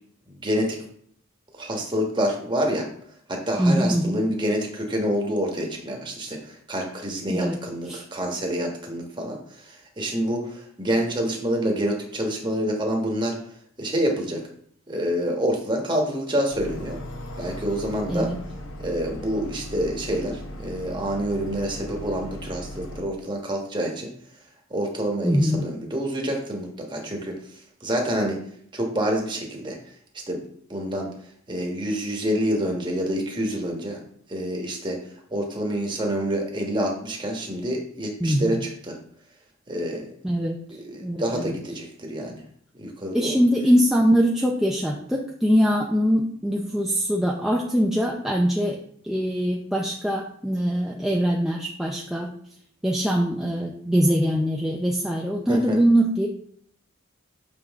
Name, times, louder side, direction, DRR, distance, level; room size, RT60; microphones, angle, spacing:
voice 1, 0.4-0.8 1.6-2.9 3.3-13.4 13.8-14.4 14.9-17.0 17.4-18.3 18.8-24.1 24.7-27.3 27.8-28.4 28.7-29.8 30.3-30.4 30.7-31.1 31.5-34.0 34.3-35.0 35.3-38.9 39.7-40.1 40.7-42.4 42.7-43.4 55.5-55.8, equal, 20° right, 0 dB, 1.3 m, -27 dB
voice 2, 3.6-4.2 7.3-7.6 7.9-8.0 18.1-18.4 25.2-25.6 38.2-38.6 40.2-40.6 41.0-41.5 43.1-48.8 49.0-52.3 52.8-56.3, equal, ahead, -2 dB, 0.5 m, -22 dB
sound 1, 16.5-23.0, equal, 70° left, 1.1 m, -38 dB
6.4 x 5.6 x 3.5 m, 0.64 s
head